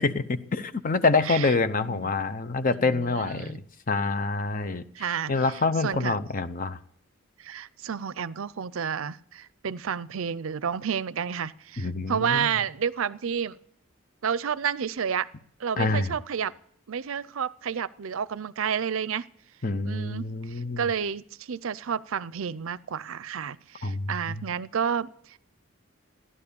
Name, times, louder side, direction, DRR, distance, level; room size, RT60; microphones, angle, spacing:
voice 1, 0.0-3.6 3.9-6.8 11.8-12.5 15.8-16.2 19.6-20.9 23.8-24.4, left 3 dB, 40° left, 0.8 m, -27 dB
voice 2, 1.2-1.5 1.8-2.1 2.7-3.6 4.9-5.4 5.8-6.2 7.4-13.6 14.2-15.3 15.6-16.5 16.9-19.3 19.8-20.3 20.8-25.4, right 7 dB, 70° right, 0.5 m, -30 dB
15.5 x 11.0 x 7.0 m
head